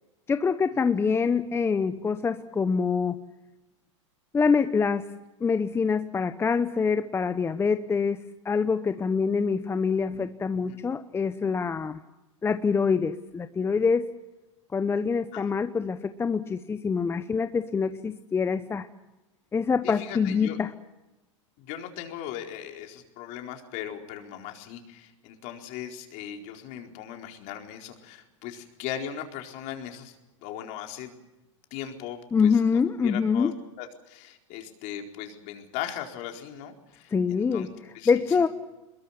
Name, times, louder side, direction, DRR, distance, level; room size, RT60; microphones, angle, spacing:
voice 1, 0.3-3.2 4.3-5.0 5.4-12.0 12.4-14.1 14.7-18.9 19.5-20.7 32.3-33.5 37.1-37.7 38.1-38.5, left 5 dB, 15° left, 10 dB, 0.9 m, -25 dB
voice 2, 19.8-20.6 21.6-30.1 30.4-31.1 31.7-33.5 33.8-37.7 37.9-38.5, left 10 dB, 50° left, 3 dB, 4.3 m, -38 dB
23.5 x 21.5 x 7.3 m, 1.0 s
hypercardioid pair, 120°, 16 cm